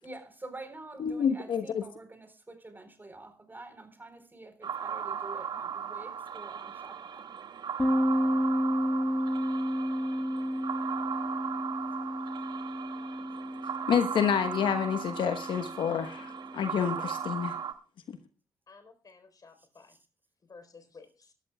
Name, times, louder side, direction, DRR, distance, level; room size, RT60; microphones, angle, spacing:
voice 1, 0.0-7.4 19.9-20.0, right 2 dB, 20° right, 8 dB, 4.0 m, -47 dB
voice 2, 1.0-1.8 13.9-17.6, left 7 dB, 60° left, 9 dB, 1.1 m, -28 dB
sound 1, 4.6-17.7, right 7 dB, 55° right, 1.5 m, -37 dB
sound 2, 7.8-17.3, equal, 15° left, 1.9 m, -32 dB
voice 3, 18.7-20.0 20.5-21.3, left 4 dB, 40° left, 9 dB, 4.1 m, -53 dB
19.5 x 13.5 x 2.3 m, 0.36 s
hypercardioid pair, 45°, 9 cm